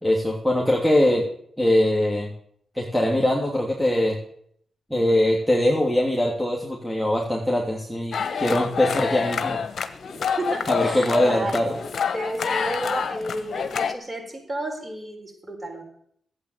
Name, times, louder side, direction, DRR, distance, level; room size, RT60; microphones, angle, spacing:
voice 1, 0.0-1.3 1.6-2.3 2.7-4.2 4.9-9.6 10.7-11.8, left 1 dB, 5° right, -2 dB, 2.9 m, -22 dB
sound 1, 8.1-13.9, left 6 dB, 60° left, 1.1 m, -27 dB
voice 2, 10.4-11.6 12.1-15.8, right 1 dB, 25° right, 0 dB, 6.5 m, -32 dB
12.0 x 8.8 x 8.0 m, 0.68 s
supercardioid pair, 40°, 0 cm